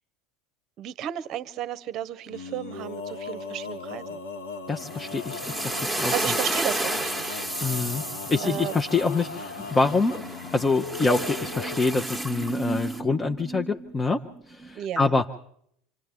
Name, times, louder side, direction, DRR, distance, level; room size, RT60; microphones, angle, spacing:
voice 1, 0.8-4.2 6.1-7.4 8.4-8.8 14.7-15.2, right 11 dB, 40° right, 15 dB, 0.8 m, -33 dB
Male singing, 2.3-12.1, left 4 dB, 70° left, 1.5 m, -38 dB
voice 2, 4.7-6.1 7.6-10.2 10.5-15.4, left 3 dB, 20° left, 4 dB, 0.8 m, -26 dB
sound 1, 4.8-13.0, right 1 dB, 5° left, 1.3 m, -32 dB
sound 2, 9.6-14.8, right 3 dB, 20° right, 1.2 m, -38 dB
28.0 x 27.0 x 3.5 m, 0.70 s
figure-of-eight pair, 75°, 0 cm